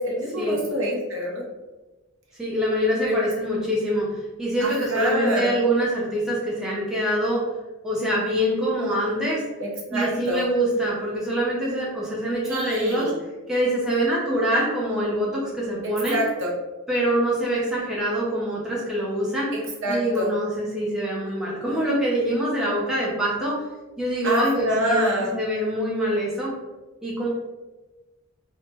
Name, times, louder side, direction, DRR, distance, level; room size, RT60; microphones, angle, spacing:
voice 1, 0.0-1.4 3.0-3.2 4.6-5.6 9.6-10.5 12.5-13.2 15.8-16.5 19.5-20.3 24.2-25.4, right 1 dB, 60° right, -2 dB, 0.6 m, -26 dB
voice 2, 2.4-7.5 7.8-9.4 9.9-13.1 13.5-16.2 16.9-19.5 19.9-23.6 24.0-25.0 25.3-26.5 27.0-27.3, equal, ahead, -7 dB, 0.4 m, -24 dB
2.0 x 2.0 x 3.2 m, 1.1 s
head